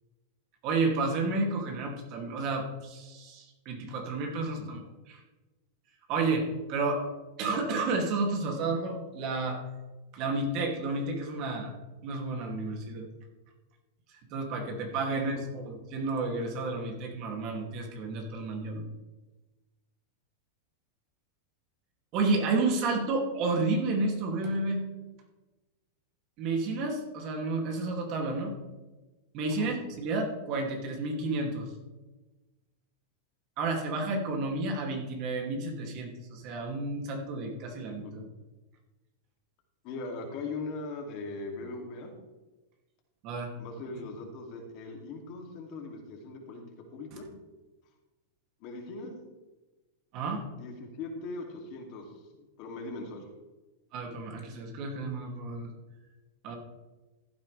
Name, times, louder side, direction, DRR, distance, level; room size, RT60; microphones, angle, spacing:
voice 1, 0.6-4.8 5.1-5.2 6.1-7.0 7.4-9.6 10.1-11.7 12.0-13.1 14.3-18.8 22.1-24.8 26.4-28.5 29.3-31.7 33.6-38.2 43.2-43.5 50.1-50.5 53.9-55.7 56.4-56.5, right 3 dB, 45° right, 2 dB, 2.6 m, -31 dB
voice 2, 15.1-15.7 29.5-29.7 38.0-38.1 39.8-42.1 43.6-46.6 46.9-47.3 48.6-49.1 50.5-53.2, left 3 dB, 45° left, 1 dB, 2.7 m, -40 dB
15.0 x 8.8 x 3.4 m, 1.1 s
supercardioid pair, 140°, 0 cm